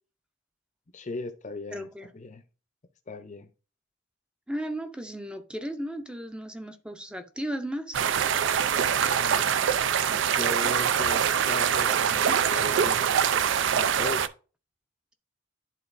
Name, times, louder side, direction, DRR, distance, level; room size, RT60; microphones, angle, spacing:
voice 1, 0.9-2.4 3.1-3.5 9.2-9.6 10.3-13.2 13.8-14.3, left 2 dB, 40° left, 0.7 m, -38 dB
voice 2, 1.7-2.1 4.5-8.0, right 1 dB, 5° right, 0.6 m, -35 dB
sound 1, 7.9-14.3, right 8 dB, 60° right, 0.4 m, -24 dB
11.0 x 3.9 x 2.6 m
head